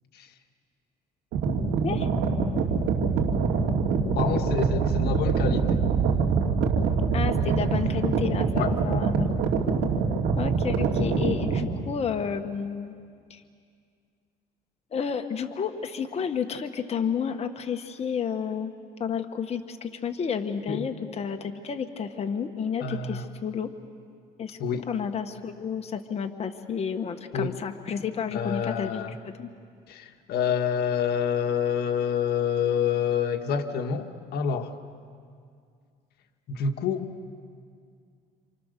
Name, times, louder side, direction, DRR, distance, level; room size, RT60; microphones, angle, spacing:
sound 1, 1.3-11.7, right 5 dB, 80° right, 2.8 m, -24 dB
voice 1, 4.1-5.8 8.5-8.7 20.7-20.9 22.8-23.3 24.6-24.9 27.3-27.6 28.3-29.2 29.9-34.7 36.5-37.1, left 7 dB, 70° left, 6 dB, 1.6 m, -27 dB
voice 2, 7.1-9.3 10.3-12.9 13.3-13.4 14.9-18.7 19.0-23.7 24.4-24.6 24.9-29.5, left 7 dB, 40° left, 5 dB, 1.4 m, -31 dB
28.5 x 27.5 x 6.8 m, 2.2 s
cardioid pair, 110°, 17 cm